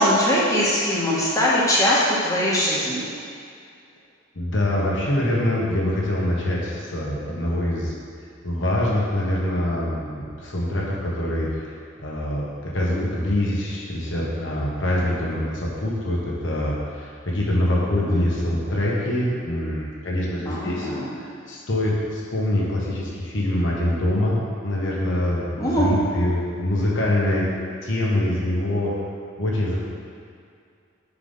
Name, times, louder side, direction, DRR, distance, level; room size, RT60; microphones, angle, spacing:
voice 1, 0.0-3.0 18.1-18.3 20.5-21.1 25.6-25.9, equal, 20° left, -7 dB, 1.4 m, -21 dB
voice 2, 4.3-7.9 8.4-11.5 12.0-20.9 21.5-27.4 27.8-28.9 29.4-29.9, left 1 dB, 75° left, -4 dB, 1.4 m, -24 dB
5.3 x 4.8 x 5.6 m, 2.3 s
head